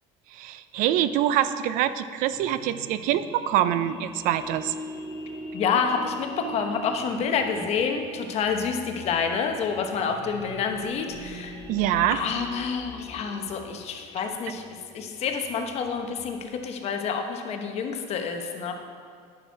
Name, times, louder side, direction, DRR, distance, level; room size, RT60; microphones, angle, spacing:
voice 1, 0.3-4.7 11.7-12.2, right 11 dB, 75° right, 13 dB, 0.4 m, -25 dB
sound 1, 2.3-16.5, right 1 dB, 20° right, 2.2 m, -42 dB
voice 2, 5.5-11.6 12.1-14.6 14.9-18.7, left 6 dB, 50° left, 4 dB, 1.0 m, -28 dB
9.9 x 6.1 x 4.7 m, 2.1 s
cardioid pair, 135°, 14 cm